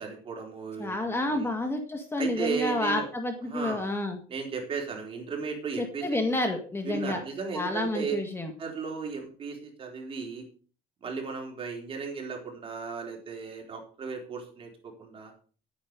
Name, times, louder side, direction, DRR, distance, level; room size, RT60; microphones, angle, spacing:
voice 1, 0.0-1.5 2.2-3.1 3.5-3.9 4.3-6.2 6.8-8.2 8.6-10.4 11.0-15.3, right 5 dB, 40° right, 1 dB, 3.9 m, -35 dB
voice 2, 0.8-4.2 5.8-7.2 7.5-8.5, left 2 dB, 15° left, 4 dB, 1.9 m, -29 dB
10.5 x 9.4 x 5.3 m, 0.40 s
cardioid pair, 125°, 15 cm